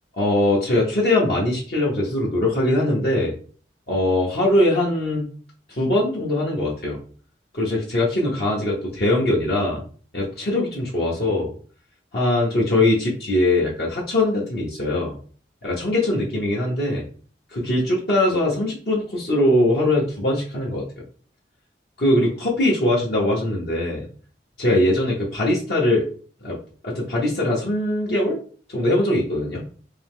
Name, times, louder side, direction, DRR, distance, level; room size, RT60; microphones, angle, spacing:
voice 1, 0.1-3.3 3.9-5.3 5.7-7.0 7.5-9.8 10.1-11.5 12.1-15.2 15.6-17.0 17.5-20.8 22.0-24.0 24.6-26.0 26.4-28.4 28.7-29.7, left 1 dB, 60° left, -5 dB, 1.0 m, -21 dB
3.8 x 2.8 x 3.6 m, 0.43 s
head